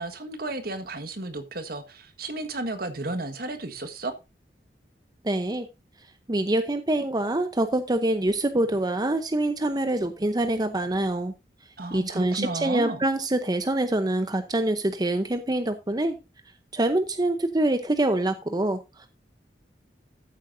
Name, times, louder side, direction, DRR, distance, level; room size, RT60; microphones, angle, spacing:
voice 1, 0.0-4.1 11.8-13.0, right 2 dB, 55° right, 1.6 m, -33 dB
voice 2, 5.2-5.7 6.3-11.3 11.9-16.2 16.7-19.1, right 1 dB, 20° right, 0.8 m, -25 dB
13.5 x 8.2 x 2.6 m
head